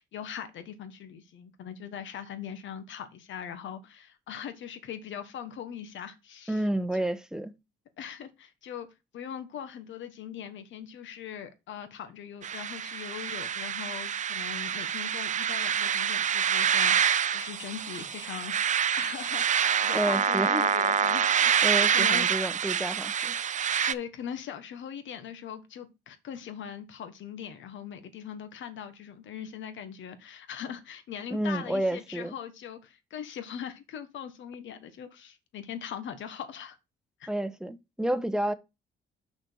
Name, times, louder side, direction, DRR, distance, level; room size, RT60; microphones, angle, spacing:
voice 1, 0.0-6.6 6.9-7.0 8.0-8.9 9.1-21.6 21.9-22.3 23.9-36.8 37.2-37.3, left 8 dB, 70° left, 1.3 m, -41 dB
voice 2, 6.5-7.5 19.9-20.6 21.6-23.3 31.3-32.3 37.3-38.5, right 1 dB, 5° right, 0.8 m, -30 dB
sound 1, 12.4-23.9, right 8 dB, 40° right, 0.4 m, -27 dB
6.0 x 4.3 x 6.2 m
cardioid pair, 90°, 20 cm